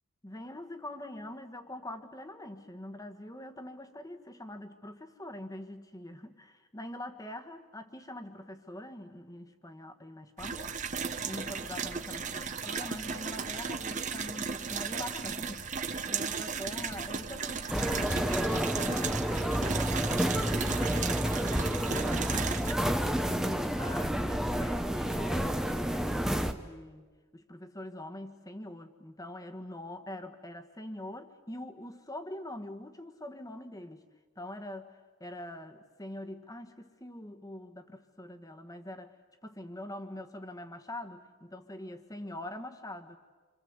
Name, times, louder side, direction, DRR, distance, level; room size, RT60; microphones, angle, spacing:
voice 1, 0.2-10.8 11.3-21.0 21.4-21.7 23.3-34.1 34.3-39.1 39.4-43.2, left 1 dB, 15° left, 7 dB, 1.5 m, -44 dB
sound 1, 10.4-22.7, right 5 dB, 35° right, 1.1 m, -35 dB
sound 2, 17.7-26.5, equal, ahead, 0.9 m, -30 dB
27.5 x 26.0 x 8.1 m, 1.4 s
head